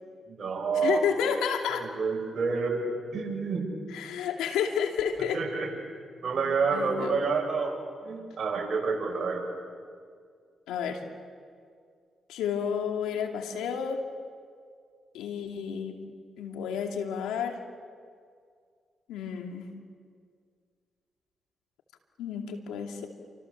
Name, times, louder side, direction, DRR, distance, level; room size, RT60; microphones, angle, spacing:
voice 1, 0.3-1.1 1.8-3.7 5.3-5.7 6.2-9.4, right 4 dB, 55° right, 1 dB, 7.9 m, -29 dB
voice 2, 0.8-1.8 3.9-5.4 6.7-7.2 10.7-11.0 12.3-14.0 15.1-16.0 16.4-17.6 19.1-19.7 22.2-23.1, left 7 dB, 90° left, 4 dB, 2.5 m, -31 dB
29.5 x 26.0 x 7.4 m, 2.1 s
supercardioid pair, 55°, 0 cm